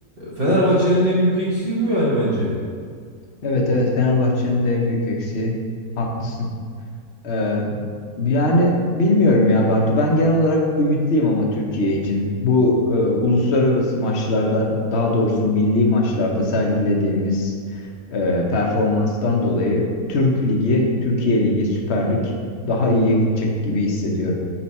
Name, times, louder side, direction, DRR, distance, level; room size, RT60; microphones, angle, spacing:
voice 1, 0.2-2.5, equal, 40° right, -9 dB, 1.4 m, -19 dB
voice 2, 3.4-5.5 6.0-6.5 7.2-7.8 8.2-17.5 18.1-22.3 22.6-24.3, left 1 dB, 50° left, 0 dB, 1.0 m, -20 dB
5.4 x 4.4 x 4.2 m, 2.1 s
omnidirectional pair, 1.6 m